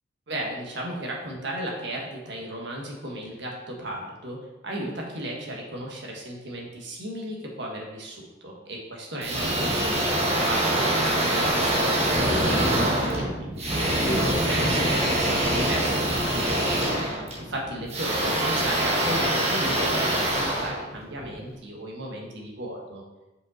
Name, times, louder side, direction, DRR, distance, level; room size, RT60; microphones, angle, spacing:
voice 1, 0.3-4.4 4.6-17.0 17.4-23.0, right 1 dB, 65° right, -1 dB, 1.4 m, -35 dB
sound 1, 9.2-21.4, right 1 dB, 35° right, 1.2 m, -24 dB
5.4 x 5.2 x 4.3 m, 1.0 s
head